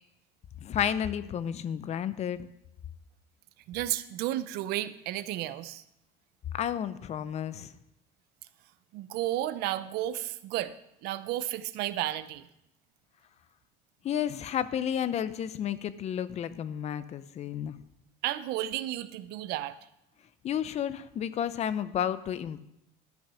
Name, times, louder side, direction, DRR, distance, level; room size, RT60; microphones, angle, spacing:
voice 1, 0.6-2.4 6.5-7.7 14.0-17.8 20.4-22.6, left 9 dB, 40° left, 14 dB, 0.7 m, -31 dB
voice 2, 3.7-5.8 8.9-10.7 11.0-12.5 18.2-19.8, right 14 dB, 70° right, 14 dB, 0.7 m, -32 dB
12.5 x 6.2 x 6.2 m, 0.82 s
cardioid pair, 125°, 17 cm